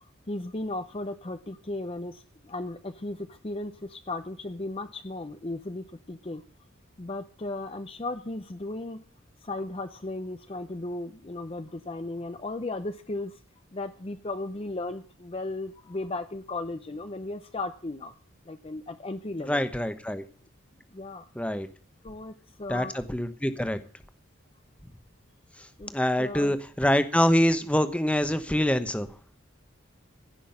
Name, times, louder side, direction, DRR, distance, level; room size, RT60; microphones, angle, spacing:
voice 1, 0.3-6.4 7.0-9.0 9.4-13.4 13.7-18.1 18.5-19.6 20.9-21.3 22.0-22.9 25.8-25.9 26.2-26.6, left 2 dB, 30° left, 9 dB, 0.6 m, -36 dB
voice 2, 19.4-20.2 21.3-21.7 22.7-23.8 25.9-29.1, equal, 5° left, 10 dB, 1.0 m, -25 dB
16.0 x 6.2 x 8.8 m, 0.43 s
head